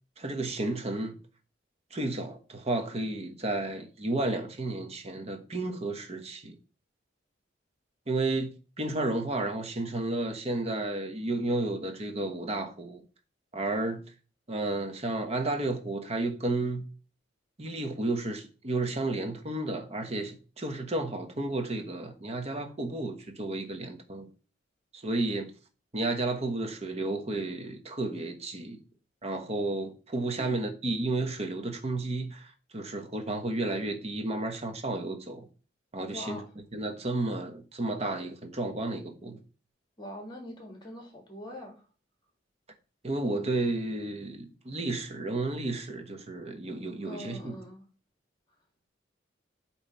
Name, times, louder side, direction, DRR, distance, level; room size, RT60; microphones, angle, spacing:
voice 1, 0.2-1.2 1.9-6.6 8.1-13.0 13.5-14.0 14.5-16.9 17.6-24.3 24.9-25.5 25.9-28.8 29.2-35.5 35.9-36.4 36.7-39.4 43.0-47.6, right 2 dB, 35° right, 1.0 m, -32 dB
voice 2, 36.1-36.5 40.0-41.8 47.0-47.8, left 1 dB, 25° left, 2.0 m, -43 dB
8.6 x 3.2 x 4.2 m
head